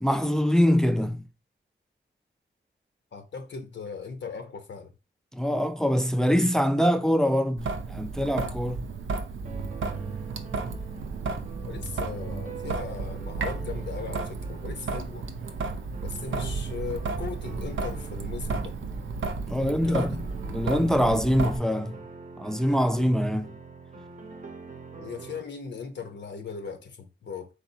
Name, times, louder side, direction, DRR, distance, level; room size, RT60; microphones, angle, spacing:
voice 1, 0.0-1.2 5.3-8.8 19.5-20.1 20.5-22.0 22.4-23.5, equal, 5° left, 0.3 m, -24 dB
voice 2, 3.1-4.9 11.7-15.3 16.0-18.8 19.6-20.2 25.0-27.5, left 5 dB, 70° left, 0.6 m, -38 dB
Traffic noise roadway noise / Drip / Trickle dribble, 7.6-21.6, right 4 dB, 85° right, 0.6 m, -33 dB
sound 1, 9.4-25.4, right 4 dB, 40° right, 0.7 m, -45 dB
4.6 x 4.0 x 2.6 m
wide cardioid pair, 170°, 20 cm